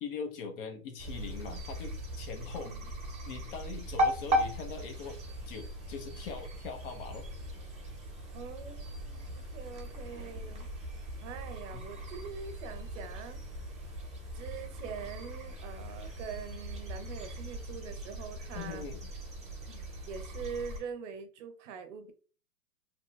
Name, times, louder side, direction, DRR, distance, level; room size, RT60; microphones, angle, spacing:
voice 1, 0.0-2.7 3.3-5.2 5.5-7.3 11.7-11.8 18.5-19.1, left 5 dB, 40° left, 0.4 m, -41 dB
sound 1, 1.0-20.8, equal, 15° right, 0.9 m, -38 dB
voice 2, 2.5-2.9 8.3-10.7 11.2-13.6 14.3-18.8 19.7-22.1, right 6 dB, 50° right, 0.6 m, -44 dB
2.8 x 2.1 x 3.0 m
hypercardioid pair, 120°, 48 cm